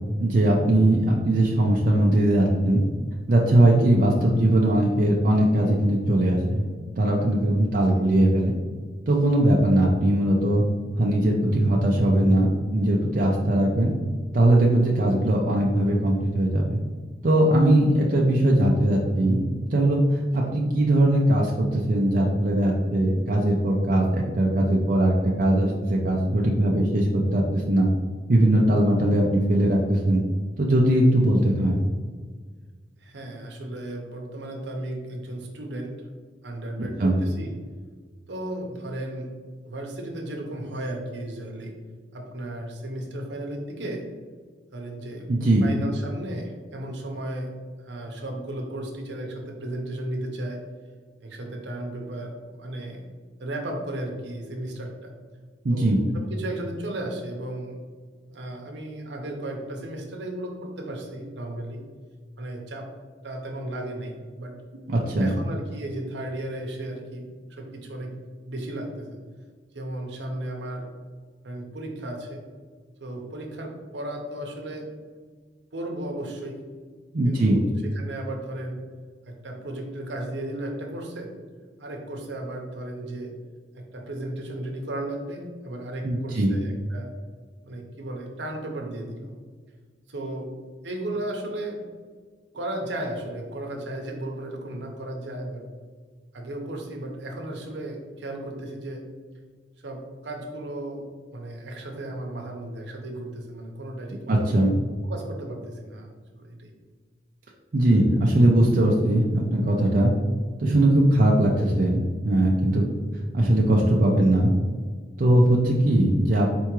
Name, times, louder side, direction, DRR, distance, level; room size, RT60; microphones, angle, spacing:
voice 1, 0.2-2.8 3.3-6.7 7.0-8.5 9.1-10.6 11.0-13.9 14.3-16.8 17.2-27.9 28.3-30.2 30.6-31.8 37.0-37.1 45.3-45.6 55.6-56.0 64.9-65.3 77.1-77.6 86.0-86.5 104.3-104.7 107.7-110.1 110.6-112.8 113.1-114.5 115.2-116.5, right 1 dB, 50° right, -2 dB, 0.5 m, -20 dB
voice 2, 7.7-8.1 20.4-20.5 33.0-36.0 36.4-37.5 38.3-39.3 39.6-41.7 42.1-44.1 44.7-45.3 45.6-47.5 47.8-50.6 51.2-53.0 53.4-55.1 55.7-57.8 58.3-61.8 62.4-62.9 63.2-64.6 65.2-68.1 68.5-69.2 69.7-70.9 71.4-72.4 73.0-74.9 75.7-76.6 77.2-78.8 79.2-81.3 81.8-83.3 83.7-87.1 87.6-89.3 90.1-90.5 90.8-91.8 92.5-95.7 96.3-99.0 99.8-101.1 101.3-104.5 105.0-106.7, right 1 dB, 75° right, 2 dB, 0.8 m, -35 dB
4.5 x 3.5 x 3.0 m, 1.5 s
head